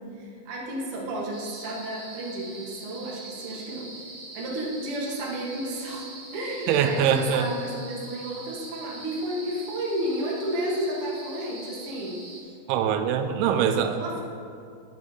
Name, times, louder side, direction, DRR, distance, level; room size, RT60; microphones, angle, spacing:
voice 1, 0.1-12.5 14.0-14.2, right 1 dB, 65° right, -4 dB, 1.3 m, -32 dB
sound 1, 1.3-12.4, right 2 dB, 45° right, 1.1 m, -43 dB
voice 2, 6.7-7.5 12.7-14.0, right 8 dB, 85° right, 7 dB, 2.9 m, -23 dB
9.6 x 6.8 x 4.8 m, 2.4 s
omnidirectional pair, 5.3 m